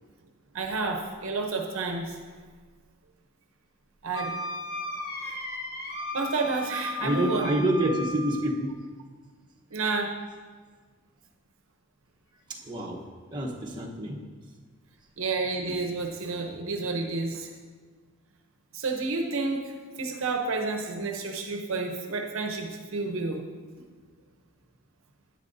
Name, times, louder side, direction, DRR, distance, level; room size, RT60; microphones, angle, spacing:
voice 1, 0.5-2.2 4.0-4.4 5.2-5.4 6.1-7.5 9.7-10.2 15.2-17.5 18.7-19.7 20.0-23.4, right 3 dB, 60° right, 3 dB, 0.7 m, -30 dB
Wind instrument woodwind instrument, 4.1-8.5, left 1 dB, 45° left, 1.1 m, -35 dB
voice 2, 7.0-8.7 12.5-13.0 13.3-14.2, right 1 dB, 20° right, -3 dB, 1.0 m, -27 dB
11.0 x 9.3 x 2.7 m, 1.5 s
head